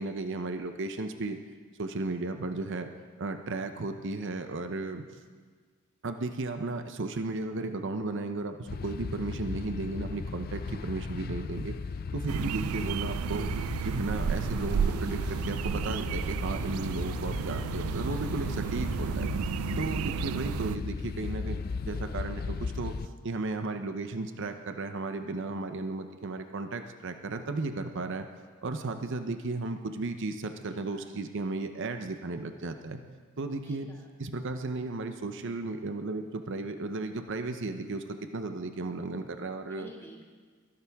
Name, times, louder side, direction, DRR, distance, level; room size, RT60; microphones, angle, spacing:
voice 1, 0.0-1.4 1.8-2.9 3.2-5.0 6.0-11.8 12.1-13.5 13.8-19.3 19.8-21.6 21.9-22.9 23.2-28.3 28.6-33.0 33.4-33.9 34.2-38.0 38.3-39.9, right 3 dB, 60° right, 7 dB, 0.7 m, -34 dB
sound 1, 8.7-23.1, left 4 dB, 45° left, 0.4 m, -36 dB
sound 2, 12.3-20.8, right 7 dB, 75° right, 0.3 m, -32 dB
voice 2, 30.6-31.3 33.6-34.4 39.7-40.2, equal, 10° left, -1 dB, 2.0 m, -54 dB
22.5 x 11.5 x 3.5 m, 1.5 s
head